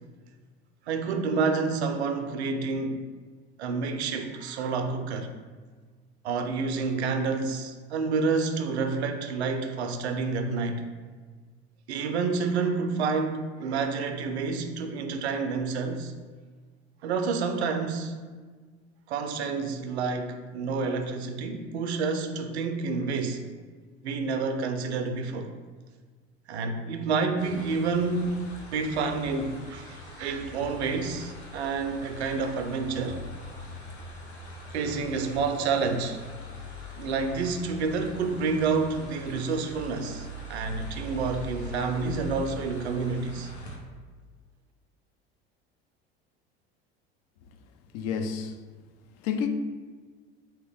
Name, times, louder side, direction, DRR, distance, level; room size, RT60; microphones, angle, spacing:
voice 1, 0.9-3.0 3.6-5.4 6.2-10.8 11.9-16.1 17.0-18.2 19.1-23.4 24.0-25.5 26.5-33.2 34.7-36.2 37.0-43.5, right 4 dB, 85° right, 0.5 m, -29 dB
sound 1, 27.4-43.8, left 1 dB, 90° left, 0.8 m, -42 dB
voice 2, 47.9-48.6 49.2-49.5, left 7 dB, 55° left, 0.5 m, -30 dB
3.3 x 2.9 x 3.5 m
hypercardioid pair, 75°, 32 cm